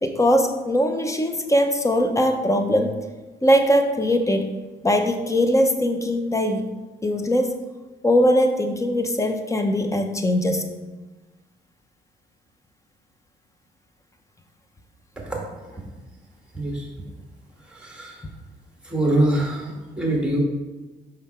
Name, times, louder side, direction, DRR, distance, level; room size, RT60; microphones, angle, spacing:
voice 1, 0.0-2.9 3.4-4.5 4.8-6.6 7.0-7.6 8.0-10.7, equal, 15° left, 6 dB, 0.8 m, -21 dB
voice 2, 15.2-15.7 16.5-16.9 17.6-18.3 18.8-20.4, right 1 dB, 5° right, -1 dB, 1.8 m, -24 dB
5.5 x 5.0 x 4.4 m, 1.2 s
cardioid pair, 90°, 20 cm